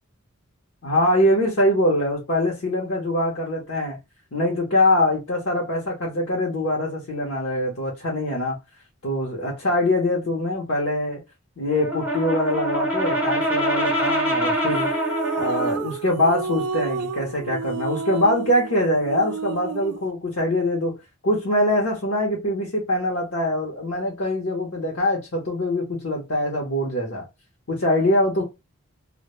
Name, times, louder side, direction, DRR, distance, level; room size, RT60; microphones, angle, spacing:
voice 1, 0.8-4.0 4.3-8.6 9.0-11.2 11.6-14.9 15.4-20.9 21.2-27.2 27.7-28.4, left 1 dB, 60° left, 0.7 m, -23 dB
Brass instrument, 11.7-15.9, equal, 10° right, 0.6 m, -24 dB
sound 1, 14.7-20.1, right 6 dB, 90° right, 0.3 m, -31 dB
2.1 x 2.0 x 2.9 m
head